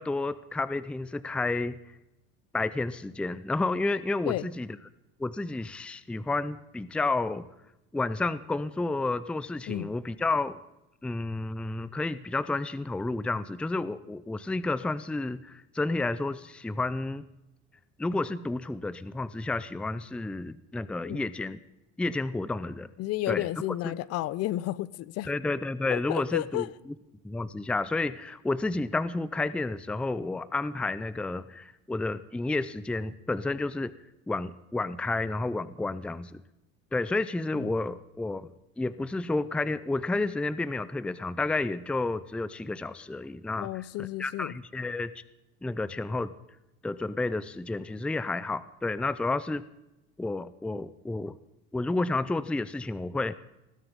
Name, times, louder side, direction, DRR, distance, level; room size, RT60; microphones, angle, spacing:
voice 1, 0.0-1.8 2.5-4.7 5.2-7.5 7.9-10.6 11.0-17.2 18.0-21.6 22.0-22.9 23.3-23.5 23.8-24.0 25.3-26.7 27.2-33.9 34.3-36.4 36.9-38.5 38.8-45.1 45.6-46.3 46.8-49.6 50.2-51.4 51.7-53.3, left 2 dB, 5° left, 0.5 m, -31 dB
voice 2, 23.0-25.3 25.9-26.7 37.5-37.7 43.6-44.5, left 16 dB, 50° left, 0.6 m, -32 dB
20.5 x 13.0 x 5.4 m
cardioid pair, 125°, 31 cm